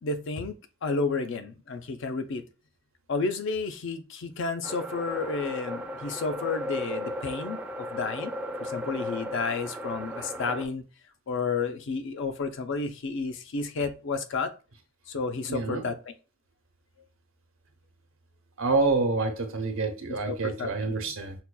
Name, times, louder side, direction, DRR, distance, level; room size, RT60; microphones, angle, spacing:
voice 1, 0.0-2.4 3.1-8.3 8.6-10.8 11.3-14.5 15.1-16.1 20.1-21.1, left 4 dB, 65° left, 0.5 m, -31 dB
sound 1, 4.6-10.6, equal, 5° right, 0.4 m, -35 dB
voice 2, 15.5-15.8 18.6-21.3, right 3 dB, 80° right, 0.8 m, -27 dB
5.6 x 2.2 x 2.2 m
head